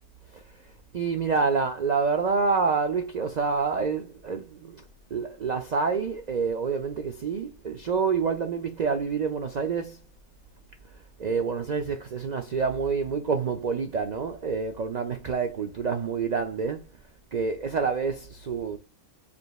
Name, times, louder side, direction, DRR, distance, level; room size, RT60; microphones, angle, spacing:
voice 1, 0.3-4.8 5.1-10.1 10.8-17.0 17.3-18.8, right 5 dB, 65° right, 0.4 m, -28 dB
5.1 x 3.3 x 2.4 m
omnidirectional pair, 1.4 m